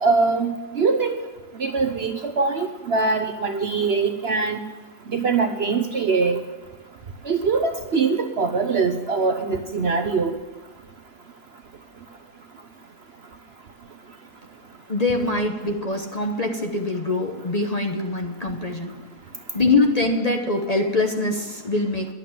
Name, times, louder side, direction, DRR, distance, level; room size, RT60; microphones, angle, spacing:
voice 1, 0.0-1.1 1.6-4.6 5.1-6.4 7.2-10.3, right 4 dB, 50° right, 7 dB, 0.9 m, -22 dB
voice 2, 14.9-18.9 19.5-22.1, left 2 dB, 30° left, 3 dB, 0.9 m, -23 dB
11.0 x 8.4 x 7.2 m, 1.3 s
omnidirectional pair, 1.6 m